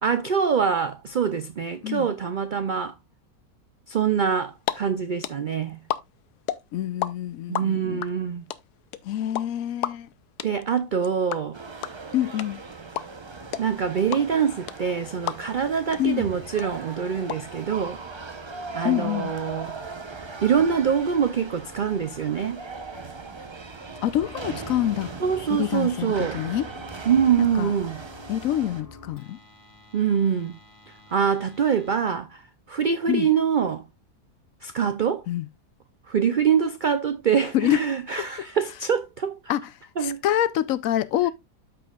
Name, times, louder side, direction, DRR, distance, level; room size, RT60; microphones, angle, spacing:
voice 1, 0.0-2.9 3.9-5.8 7.5-8.4 10.4-11.6 13.6-18.0 18.7-19.7 20.4-22.6 25.2-26.4 27.1-28.0 29.9-30.5 31.1-32.4 32.7-33.8 34.6-35.3 36.1-39.4 40.0-40.2, right 7 dB, 85° right, 0.4 m, -24 dB
sound 1, 4.5-4.7 5.0-7.1 7.3-15.7 15.9-16.0 16.3-17.3, left 12 dB, 90° left, 1.2 m, -30 dB
voice 2, 6.7-8.0 9.0-10.1 12.1-12.6 16.0-16.3 18.8-19.3 24.0-25.1 25.5-26.7 27.4-27.7 28.3-29.4 33.1-33.3 35.3-35.5 37.5-37.8 38.2-38.3 39.5-39.7 40.0-41.3, left 12 dB, 70° left, 0.9 m, -26 dB
sound 2, 11.5-28.8, right 4 dB, 30° right, 0.5 m, -39 dB
sound 3, 15.5-32.0, left 2 dB, 15° left, 1.9 m, -49 dB
13.5 x 4.6 x 2.3 m
omnidirectional pair, 1.6 m